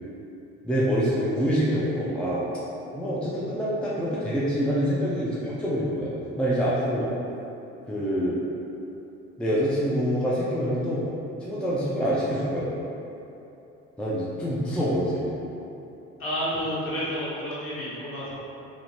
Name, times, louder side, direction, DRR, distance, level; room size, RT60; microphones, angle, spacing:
voice 1, 0.6-2.4 2.9-6.1 6.4-7.1 7.9-8.4 9.4-11.1 11.4-12.7 14.0-15.3, equal, 5° left, -8 dB, 0.4 m, -26 dB
voice 2, 16.2-18.3, equal, 45° left, -9 dB, 1.2 m, -30 dB
3.1 x 2.0 x 2.7 m, 2.9 s
supercardioid pair, 75°, 33 cm